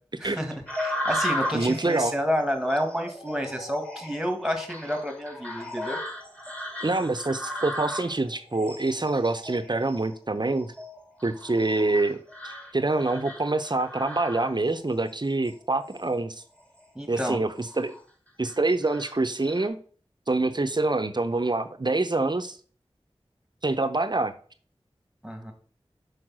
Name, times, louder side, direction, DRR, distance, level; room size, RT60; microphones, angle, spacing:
voice 1, 0.2-6.0 17.0-17.4 25.2-25.5, equal, 5° right, 1.8 m, -30 dB
sound 1, 0.7-15.0 15.4-16.1 16.6-16.8 17.3-18.0 18.4-19.7, equal, 10° left, 2.4 m, -36 dB
voice 2, 1.5-2.1 6.8-10.7 11.2-16.4 17.1-18.0 18.4-19.8 20.3-22.6 23.6-24.3, right 2 dB, 45° right, 0.7 m, -26 dB
6.3 x 4.8 x 6.1 m
wide cardioid pair, 55°, 11 cm